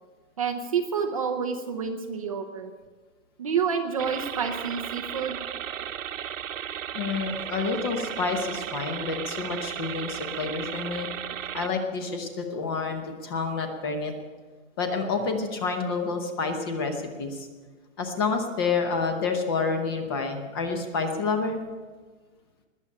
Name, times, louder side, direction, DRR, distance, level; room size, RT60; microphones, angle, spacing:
voice 1, 0.4-2.7 3.4-5.4, right 6 dB, 25° right, 3 dB, 0.6 m, -28 dB
sound 1, 4.0-11.7, right 10 dB, 70° right, 0.8 m, -35 dB
voice 2, 6.9-11.1 11.5-14.1 14.8-17.5 18.0-21.6, left 4 dB, 20° left, 6 dB, 0.8 m, -29 dB
20.5 x 7.0 x 8.5 m, 1.4 s
hypercardioid pair, 175°, 40 cm